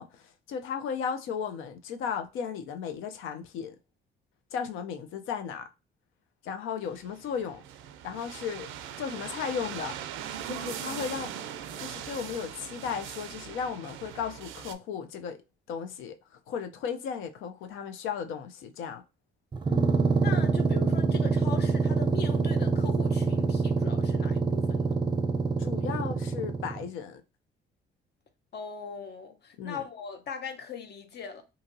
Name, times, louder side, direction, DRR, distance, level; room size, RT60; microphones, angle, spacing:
voice 1, 0.0-3.8 4.5-5.7 6.4-7.6 8.0-8.7 9.0-9.9 10.5-11.3 11.8-15.4 15.7-16.2 16.5-19.0 25.6-27.2 29.6-29.8, left 7 dB, 85° left, 0.4 m, -35 dB
sound 1, 6.9-14.7, right 9 dB, 90° right, 0.4 m, -40 dB
sound 2, 19.5-26.9, right 4 dB, 25° right, 0.5 m, -26 dB
voice 2, 20.2-24.8 28.5-31.4, left 6 dB, 55° left, 0.8 m, -40 dB
2.7 x 2.7 x 2.6 m
cardioid pair, 90°, 20 cm